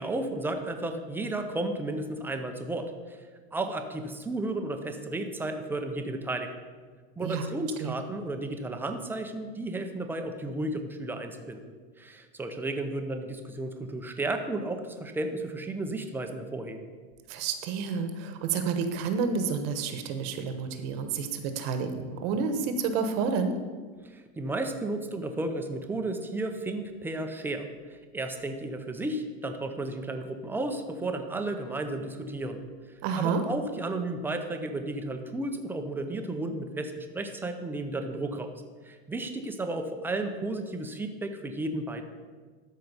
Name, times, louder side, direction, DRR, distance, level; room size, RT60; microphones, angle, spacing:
voice 1, 0.0-6.5 7.2-11.6 12.0-16.9 24.0-32.6 33.1-38.5 38.8-42.0, right 2 dB, 5° right, 6 dB, 0.5 m, -33 dB
voice 2, 17.3-23.6 33.0-33.4, right 5 dB, 55° right, 8 dB, 1.1 m, -29 dB
13.0 x 4.6 x 5.4 m, 1.5 s
supercardioid pair, 150°, 34 cm